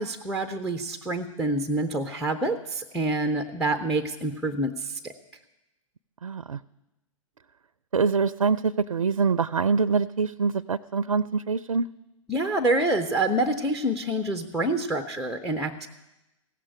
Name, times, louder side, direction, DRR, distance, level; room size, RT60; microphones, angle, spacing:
voice 1, 0.0-5.1 12.3-15.9, right 1 dB, ahead, 8 dB, 0.5 m, -27 dB
voice 2, 6.2-6.6 7.9-11.9, right 5 dB, 75° right, 18 dB, 0.4 m, -24 dB
16.0 x 7.5 x 9.7 m, 0.96 s
figure-of-eight pair, 115°, 18 cm